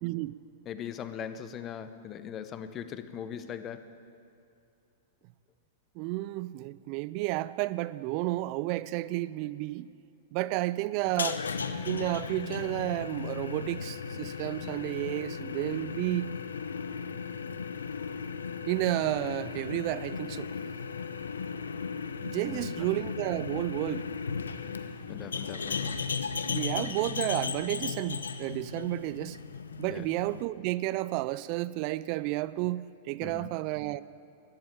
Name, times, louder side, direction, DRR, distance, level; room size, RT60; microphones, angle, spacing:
voice 1, 0.0-0.3 6.0-9.9 10.3-11.5 11.9-16.3 18.7-20.5 22.2-24.1 26.5-29.4 29.8-34.0, right 18 dB, 45° right, 18 dB, 0.4 m, -31 dB
voice 2, 0.7-3.9 22.4-22.9 25.1-26.0 29.9-30.0 33.2-33.5, left 8 dB, 30° left, 11 dB, 0.9 m, -40 dB
sound 1, 11.0-30.4, left 5 dB, 85° left, 0.7 m, -36 dB
13.5 x 11.0 x 9.0 m, 2.5 s
hypercardioid pair, 105°, 0 cm